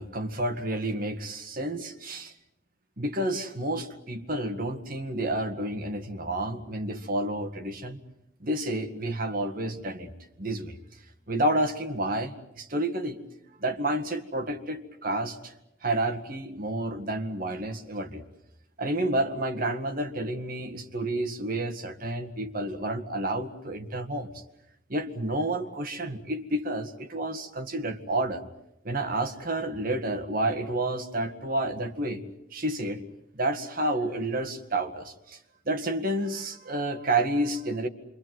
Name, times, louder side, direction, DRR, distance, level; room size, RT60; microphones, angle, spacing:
voice 1, 0.0-2.3 3.0-8.0 8.4-10.1 10.4-10.8 11.3-13.2 13.6-15.5 15.8-18.2 18.8-24.3 24.9-28.4 28.8-32.2 32.5-33.0 33.3-35.4 35.7-37.9, right 1 dB, 45° right, 6 dB, 1.9 m, -30 dB
27.0 x 24.0 x 7.8 m, 0.84 s
head